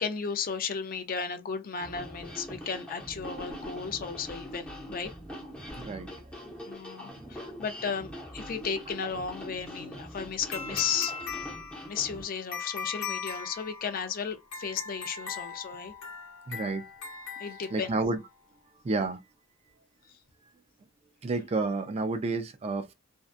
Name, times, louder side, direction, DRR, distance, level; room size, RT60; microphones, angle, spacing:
voice 1, 0.0-5.1 6.7-11.6 11.8-15.9 17.4-18.0 19.0-19.1, left 6 dB, 45° left, 0.4 m, -34 dB
sound 1, 1.8-12.2, equal, 5° left, 0.7 m, -43 dB
voice 2, 5.7-6.1 16.5-16.9 17.7-18.2 18.8-19.2 21.2-22.9, right 3 dB, 30° right, 0.3 m, -30 dB
sound 2, 10.5-18.2, left 5 dB, 60° left, 0.9 m, -39 dB
2.6 x 2.2 x 2.4 m
head